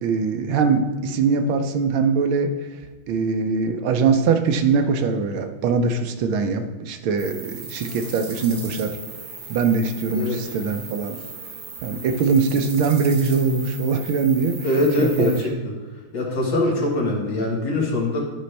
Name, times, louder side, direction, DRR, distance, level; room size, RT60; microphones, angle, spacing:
voice 1, 0.0-2.8 3.1-9.0 9.5-11.2 11.8-14.6 15.0-15.3, right 5 dB, 75° right, 7 dB, 1.5 m, -22 dB
sound 1, 7.2-15.4, right 4 dB, 60° right, 2.1 m, -37 dB
voice 2, 14.6-15.6 16.1-18.2, left 2 dB, 60° left, -2 dB, 2.1 m, -22 dB
11.5 x 5.1 x 3.3 m, 1.3 s
omnidirectional pair, 2.3 m